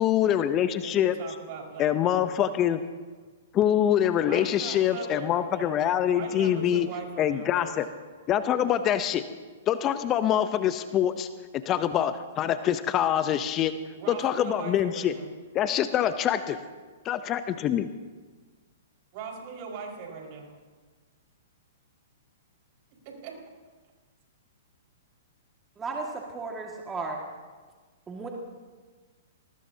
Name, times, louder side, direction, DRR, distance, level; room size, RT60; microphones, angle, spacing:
voice 1, 0.0-1.1 1.8-2.8 3.5-6.9 7.2-7.9 8.3-9.2 9.7-11.3 11.7-13.7 14.1-15.1 15.5-16.6 17.0-17.9, left 10 dB, 30° left, 11 dB, 0.7 m, -25 dB
voice 2, 0.8-2.4 4.2-5.8 6.1-7.7 13.9-15.3 19.1-20.5 23.0-23.3, right 5 dB, 45° right, 0 dB, 5.0 m, -40 dB
voice 3, 25.8-27.2 28.1-28.3, right 3 dB, 15° right, -1 dB, 1.9 m, -34 dB
21.5 x 19.5 x 2.8 m, 1.4 s
hypercardioid pair, 120°, 0 cm